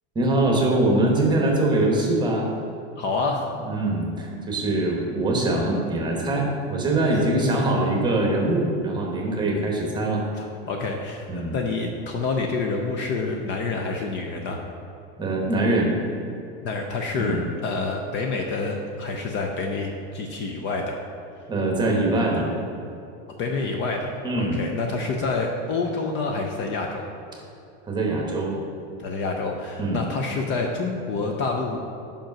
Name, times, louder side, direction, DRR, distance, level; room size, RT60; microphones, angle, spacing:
voice 1, 0.1-2.5 3.6-10.2 11.3-11.5 15.2-15.9 17.1-17.4 21.5-22.5 24.2-24.6 27.8-28.6 29.8-30.0, right 2 dB, 15° right, -1 dB, 1.0 m, -23 dB
voice 2, 3.0-3.4 10.4-14.6 16.6-21.0 23.4-27.1 29.0-31.8, left 3 dB, 35° left, 2 dB, 0.5 m, -28 dB
5.2 x 5.1 x 5.8 m, 2.7 s
supercardioid pair, 150°, 32 cm